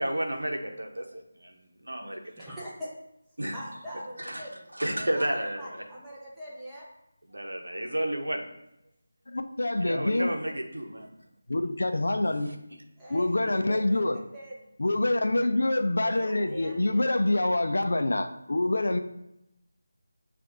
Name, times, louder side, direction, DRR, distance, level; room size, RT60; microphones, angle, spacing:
voice 1, 0.0-1.5 1.8-2.2 3.4-3.5 4.2-4.4 4.7-5.6 7.3-8.4 9.8-11.1, right 1 dB, 80° right, 3 dB, 0.9 m, -31 dB
voice 2, 2.2-2.9 3.5-6.9 13.0-14.7 16.0-17.1, equal, 5° right, -10 dB, 0.9 m, -43 dB
voice 3, 9.3-10.3 11.5-12.5 13.1-14.2 14.8-19.0, left 2 dB, 65° left, 7 dB, 0.5 m, -26 dB
7.0 x 2.5 x 2.6 m, 0.84 s
figure-of-eight pair, 160°, 0 cm